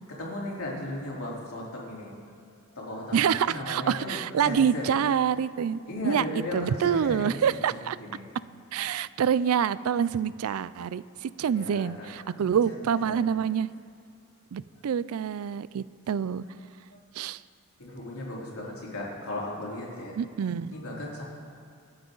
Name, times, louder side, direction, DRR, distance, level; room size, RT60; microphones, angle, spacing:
voice 1, 0.2-2.1 2.7-5.0 5.9-7.8 8.1-8.3 11.5-11.9 12.4-13.2 17.8-20.2 20.7-21.2, left 1 dB, 75° left, -4 dB, 3.6 m, -36 dB
voice 2, 3.1-6.2 6.5-8.0 8.7-13.7 14.5-16.4 17.1-17.4 20.2-20.8, right 8 dB, 75° right, 18 dB, 0.4 m, -26 dB
25.5 x 8.8 x 3.9 m, 2.4 s
head